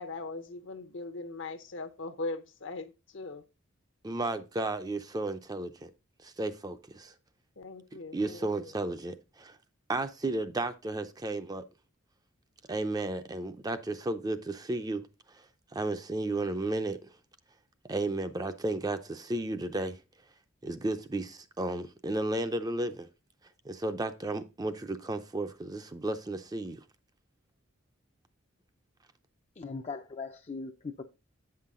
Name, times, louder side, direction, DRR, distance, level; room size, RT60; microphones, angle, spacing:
voice 1, 0.0-3.4 7.6-8.7, left 3 dB, 65° left, 0.8 m, -40 dB
voice 2, 4.0-5.9 6.2-7.1 8.1-9.6 9.9-11.6 12.7-15.0 15.7-17.0 17.9-20.0 20.6-23.1 23.6-26.8, right 2 dB, 20° right, 0.5 m, -33 dB
voice 3, 29.6-31.0, left 4 dB, 30° left, 0.4 m, -39 dB
8.4 x 5.7 x 3.6 m
head